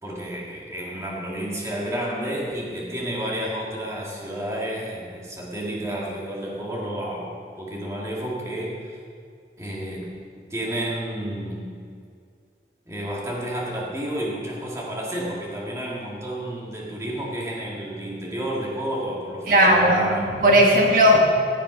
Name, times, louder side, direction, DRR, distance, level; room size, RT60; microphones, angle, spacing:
voice 1, 0.0-9.0 9.6-10.1 10.5-11.6 12.9-20.2, right 1 dB, 15° right, -4 dB, 2.0 m, -31 dB
voice 2, 19.5-21.2, equal, 50° right, 0 dB, 1.8 m, -17 dB
15.0 x 7.3 x 5.2 m, 2.2 s
head